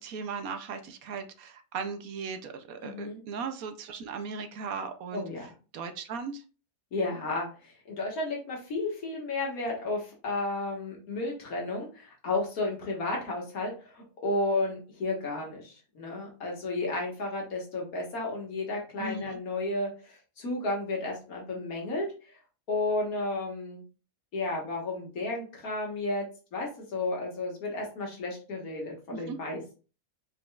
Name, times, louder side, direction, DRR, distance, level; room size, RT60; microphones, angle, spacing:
voice 1, 0.0-6.4 19.0-19.3 29.1-29.4, right 5 dB, 70° right, 7 dB, 1.1 m, -37 dB
voice 2, 2.8-3.2 5.1-5.5 6.9-22.4 22.7-23.8 24.3-29.6, left 2 dB, 65° left, -1 dB, 1.9 m, -33 dB
4.9 x 4.5 x 2.4 m, 0.36 s
omnidirectional pair, 1.6 m